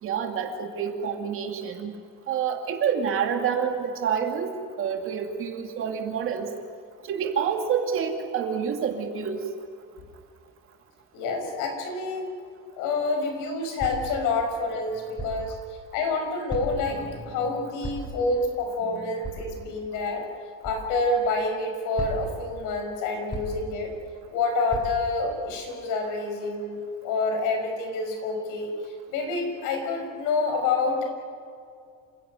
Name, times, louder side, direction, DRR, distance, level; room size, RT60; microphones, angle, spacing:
voice 1, 0.0-2.0 2.3-4.5 4.8-6.5 7.0-9.4 18.9-19.0, right 7 dB, 40° right, 4 dB, 2.3 m, -28 dB
voice 2, 11.1-12.3 12.8-15.6 15.9-20.3 20.6-23.9 24.3-31.0, left 3 dB, 70° left, 4 dB, 5.9 m, -28 dB
sound 1, 13.8-14.2 15.2-15.4 16.5-16.9 17.8-18.2 19.2-19.4 20.6-20.8 22.0-22.4 23.3-23.7 24.7-24.9, right 1 dB, 15° left, 5.3 m, -34 dB
27.5 x 17.0 x 9.2 m, 2.3 s
cardioid pair, 180°, 33 cm